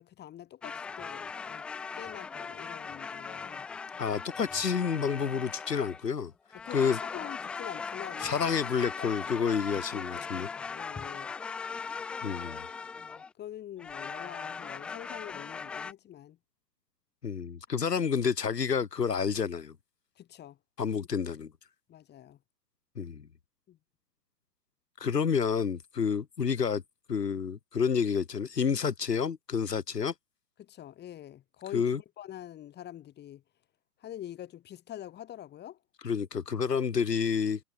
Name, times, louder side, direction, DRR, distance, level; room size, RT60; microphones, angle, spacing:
voice 1, 0.0-1.6 1.9-3.7 6.5-8.5 9.0-9.3 9.7-11.3 13.0-16.4 20.2-20.6 21.9-22.4 23.7-23.8 30.6-33.4 34.0-35.8, left 12 dB, 20° left, 5.4 m, -45 dB
sound 1, 0.6-6.1 6.5-13.3 13.8-15.9, left 5 dB, ahead, 0.4 m, -39 dB
voice 2, 4.0-6.3 6.7-7.0 8.2-10.5 12.2-12.6 17.2-19.7 20.8-21.5 23.0-23.3 25.0-26.8 27.1-30.1 31.7-32.0 36.0-37.6, left 6 dB, 75° left, 2.6 m, -29 dB
figure-of-eight pair, 120°, 49 cm